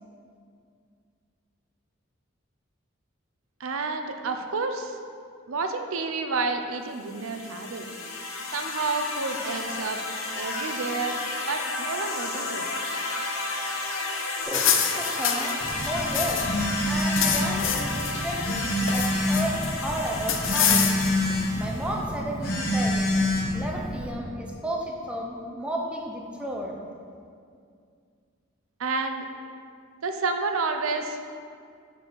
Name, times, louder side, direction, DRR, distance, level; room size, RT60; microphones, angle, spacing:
voice 1, 3.6-5.0 5.5-7.9 8.5-10.0 10.4-11.2 11.5-12.8 28.8-29.3 30.0-31.3, right 3 dB, 85° right, 6 dB, 0.6 m, -30 dB
sound 1, 6.9-22.0, left 2 dB, 80° left, 0.9 m, -33 dB
sound 2, 14.4-16.6 16.9-18.1 18.5-19.7 20.3-21.3, left 8 dB, 65° left, 0.6 m, -26 dB
voice 2, 14.9-16.5 16.9-20.8 21.6-23.1 23.5-26.8, right 1 dB, 5° right, -1 dB, 0.6 m, -33 dB
Telephone, 15.6-24.1, left 1 dB, 50° left, 1.3 m, -27 dB
6.9 x 4.8 x 6.1 m, 2.2 s
head